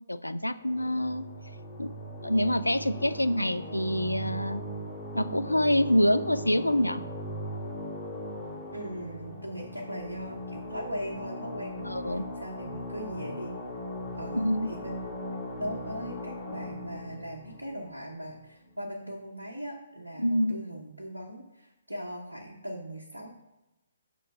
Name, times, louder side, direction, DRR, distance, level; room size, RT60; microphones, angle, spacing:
voice 1, 0.1-1.2 1.8-1.9 2.2-4.6 5.1-7.0 11.8-12.3 14.3-14.7 20.2-20.6, equal, 90° left, 12 dB, 0.4 m, -26 dB
sound 1, 0.6-18.7, equal, 30° left, 1.9 m, -39 dB
voice 2, 8.7-13.6 14.1-15.2 15.6-23.3, equal, 85° right, -3 dB, 1.2 m, -39 dB
6.2 x 3.2 x 5.5 m, 0.99 s
figure-of-eight pair, 135°, 0 cm